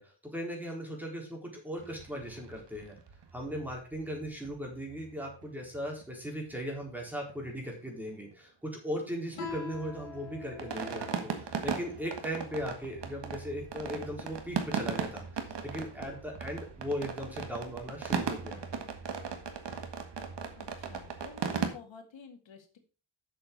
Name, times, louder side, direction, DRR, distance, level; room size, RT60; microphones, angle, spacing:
voice 1, 0.0-3.0 3.3-18.6, equal, 5° right, 0 dB, 4.0 m, -38 dB
sound 1, 1.8-6.3 6.5-6.6 6.8-7.0 7.3-8.3 8.6-21.7, right 6 dB, 65° right, 1.8 m, -38 dB
Guitar, 9.3-12.6, left 8 dB, 90° left, 3.8 m, -46 dB
voice 2, 20.5-22.8, left 6 dB, 75° left, 5 dB, 2.1 m, -51 dB
7.7 x 6.8 x 5.4 m, 0.36 s
cardioid pair, 90°, 46 cm